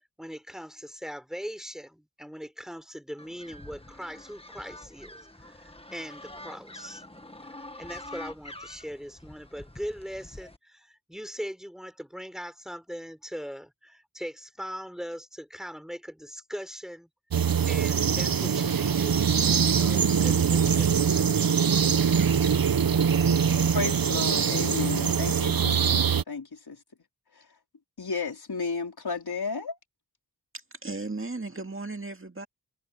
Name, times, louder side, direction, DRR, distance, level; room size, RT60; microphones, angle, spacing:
voice 1, 0.2-7.0 7.5-17.1 17.7-21.2, equal, ahead, 3.7 m, -40 dB
sound 1, 3.2-10.6, left 1 dB, 15° left, 1.8 m, -46 dB
sound 2, 17.3-26.2, right 7 dB, 65° right, 0.8 m, -23 dB
voice 2, 23.7-26.8 27.4-27.5 28.0-29.8, left 4 dB, 80° left, 3.9 m, -33 dB
voice 3, 30.8-32.5, right 3 dB, 35° right, 2.1 m, -35 dB
wide cardioid pair, 70°, 38 cm